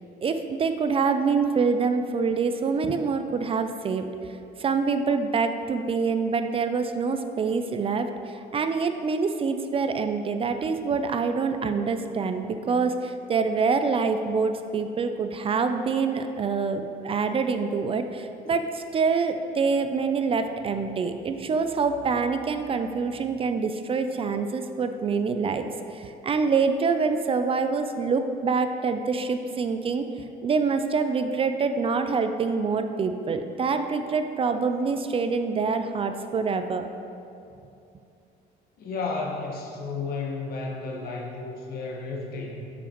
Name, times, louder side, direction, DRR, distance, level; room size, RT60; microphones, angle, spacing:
voice 1, 0.2-4.1 4.6-25.7 25.9-30.0 30.4-36.8, right 5 dB, 35° right, 8 dB, 0.4 m, -26 dB
voice 2, 38.8-42.7, left 3 dB, 65° left, -1 dB, 1.4 m, -32 dB
8.9 x 7.1 x 3.0 m, 2.6 s
cardioid pair, 110°, 17 cm